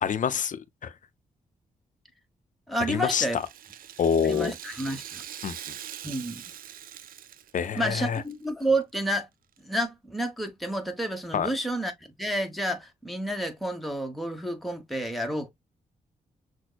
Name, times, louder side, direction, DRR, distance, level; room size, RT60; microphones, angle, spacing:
voice 1, 0.0-0.9 2.9-3.4 4.0-4.5 5.4-5.8 7.5-8.2 11.3-11.5, left 7 dB, 60° left, 0.6 m, -27 dB
voice 2, 2.7-3.4 4.2-5.2 6.0-6.4 7.7-9.3 9.6-11.9 12.2-15.5, right 1 dB, ahead, 1.1 m, -30 dB
Rattle (instrument), 3.1-8.3 8.6-8.7 9.6-9.7, right 10 dB, 70° right, 0.4 m, -43 dB
6.1 x 2.2 x 2.3 m
cardioid pair, 75°, 15 cm